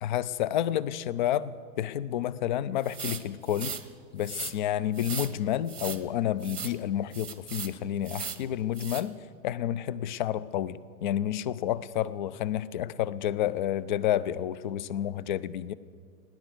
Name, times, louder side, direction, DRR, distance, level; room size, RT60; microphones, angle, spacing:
voice 1, 0.0-3.8 4.1-9.1 9.4-15.7, left 11 dB, 35° left, 19 dB, 0.4 m, -30 dB
sound 1, 2.8-3.8 4.2-4.5 4.9-5.3 5.7-6.0 6.4-6.7 7.1-7.7 8.0-8.4 8.7-9.0, right 6 dB, 85° right, 1.2 m, -37 dB
17.5 x 10.5 x 7.8 m, 2.1 s
figure-of-eight pair, 100°, 45 cm